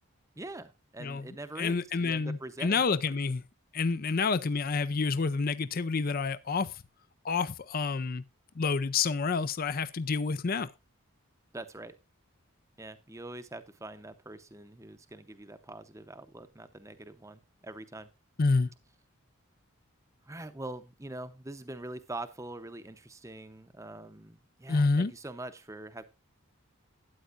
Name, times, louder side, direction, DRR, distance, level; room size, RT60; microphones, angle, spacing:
voice 1, 0.4-3.2 4.1-4.2 11.5-11.9 12.8-18.1 20.3-26.0, right 2 dB, 15° right, 0.7 m, -44 dB
voice 2, 1.6-3.4 3.7-6.7 7.2-8.2 8.6-10.7 18.4-18.7 24.7-25.1, left 4 dB, 40° left, 0.5 m, -28 dB
13.0 x 9.1 x 2.5 m
head